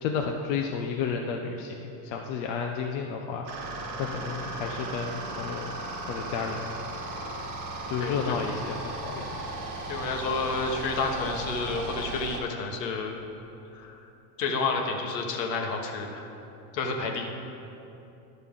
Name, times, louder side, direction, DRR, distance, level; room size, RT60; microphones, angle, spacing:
voice 1, 0.0-3.5 4.0-5.7 6.1-6.6 7.9-9.3, left 6 dB, 60° left, 2 dB, 0.7 m, -31 dB
sound 1, 3.4-12.4, right 2 dB, 40° right, 1.2 m, -36 dB
voice 2, 8.0-8.4 9.9-13.1 13.7-14.0 14.4-16.3 16.7-17.3, left 4 dB, 80° left, 2 dB, 1.3 m, -30 dB
10.5 x 6.6 x 3.7 m, 2.9 s
hypercardioid pair, 100°, 48 cm